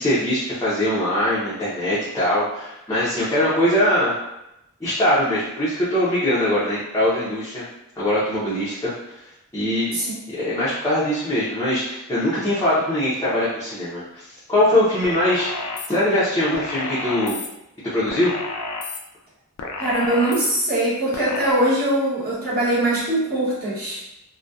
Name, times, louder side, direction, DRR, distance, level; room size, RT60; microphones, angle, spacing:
voice 1, 0.0-4.2 4.8-7.7 8.0-8.9 9.5-10.0 10.3-15.5 15.9-17.4 17.9-18.3, left 1 dB, 15° left, -11 dB, 0.5 m, -22 dB
sound 1, 15.0-15.9 16.5-17.5 18.1-19.0 19.6-20.5 21.1-21.5, left 3 dB, 80° left, 0.4 m, -31 dB
voice 2, 19.8-24.0, right 1 dB, 45° right, -8 dB, 1.0 m, -22 dB
2.6 x 2.1 x 2.3 m, 0.86 s
head